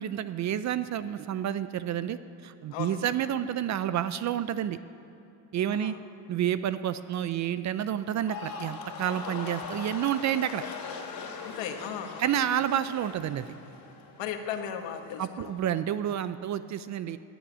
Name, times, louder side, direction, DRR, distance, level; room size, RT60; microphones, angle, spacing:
voice 1, 0.0-4.8 5.5-5.9 6.3-10.6 12.2-13.5 15.2-17.2, right 10 dB, 40° right, 13 dB, 0.4 m, -29 dB
voice 2, 2.7-3.0 5.7-6.0 11.4-12.2 14.2-15.5, left 8 dB, 75° left, 6 dB, 1.5 m, -36 dB
sound 1, 8.1-14.4 14.7-15.2, left 5 dB, 50° left, 2.5 m, -41 dB
17.5 x 10.0 x 6.2 m, 2.9 s
cardioid pair, 140°, 45 cm